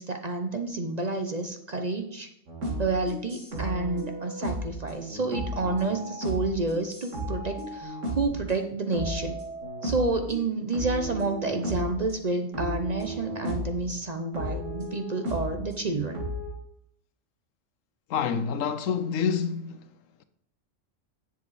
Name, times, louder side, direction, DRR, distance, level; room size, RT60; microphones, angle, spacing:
voice 1, 0.0-2.3 2.8-9.4 9.8-16.2, right 3 dB, 40° right, 0.7 m, -29 dB
sound 1, 2.5-8.6 8.9-10.4 10.7-12.0 12.5-13.8 14.3-16.5, right 1 dB, 70° right, 2.7 m, -34 dB
voice 2, 18.1-19.8, left 6 dB, 80° left, 1.1 m, -27 dB
10.0 x 7.4 x 4.1 m
omnidirectional pair, 1.3 m